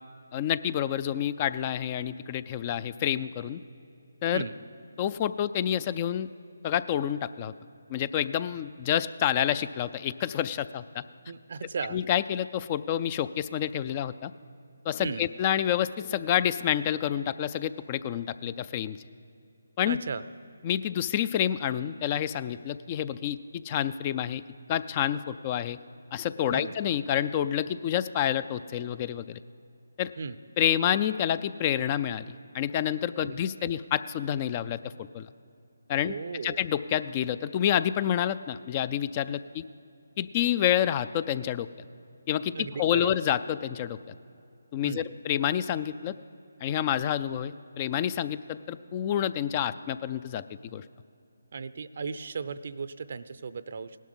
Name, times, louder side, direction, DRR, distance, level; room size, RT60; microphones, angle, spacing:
voice 1, 0.3-3.6 4.2-4.4 5.0-6.3 6.6-7.5 7.9-11.0 11.9-14.3 14.8-19.0 19.8-20.0 20.6-24.4 24.7-25.8 26.1-29.4 30.0-30.1 30.6-32.3 32.5-35.3 35.9-36.1 36.4-39.6 40.2-41.7 42.3-42.5 42.8-44.1 44.7-46.1 46.6-50.4 50.7-50.8, left 10 dB, 25° left, 16 dB, 0.3 m, -28 dB
voice 2, 11.3-12.0 15.0-15.2 19.8-20.2 26.5-26.7 30.2-30.4 33.2-33.3 36.0-36.6 42.5-43.1 44.8-45.0 51.5-54.0, right 5 dB, 50° right, 14 dB, 0.5 m, -36 dB
17.5 x 12.0 x 5.6 m, 2.6 s
figure-of-eight pair, 155°, 0 cm